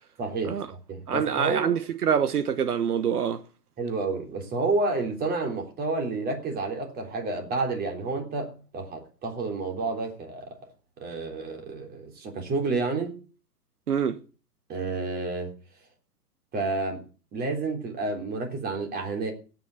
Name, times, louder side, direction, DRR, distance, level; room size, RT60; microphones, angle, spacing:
voice 1, 0.2-1.8 3.8-10.5 11.0-13.1 14.7-15.5 16.5-17.1 17.3-19.3, right 3 dB, 20° right, 3.6 m, -30 dB
voice 2, 1.1-3.4 13.9-14.2, right 8 dB, 65° right, 1.2 m, -25 dB
17.0 x 6.5 x 7.9 m
figure-of-eight pair, 120°, 49 cm